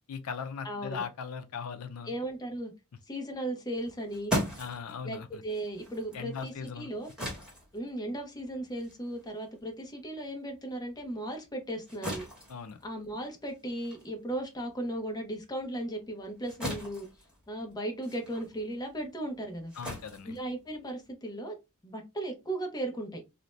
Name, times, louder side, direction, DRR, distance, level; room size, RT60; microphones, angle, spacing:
voice 1, 0.1-2.1 4.6-5.4 6.1-6.9 12.5-12.8 19.8-20.3, left 6 dB, 85° left, 0.4 m, -39 dB
voice 2, 0.6-1.0 2.1-2.7 3.1-4.3 5.0-7.1 7.7-12.3 12.8-17.1 17.5-19.7 20.2-21.6 21.8-23.2, right 1 dB, 20° left, 0.7 m, -36 dB
sound 1, 3.7-10.5 10.9-21.1, equal, 5° right, 1.2 m, -40 dB
2.6 x 2.1 x 3.1 m
head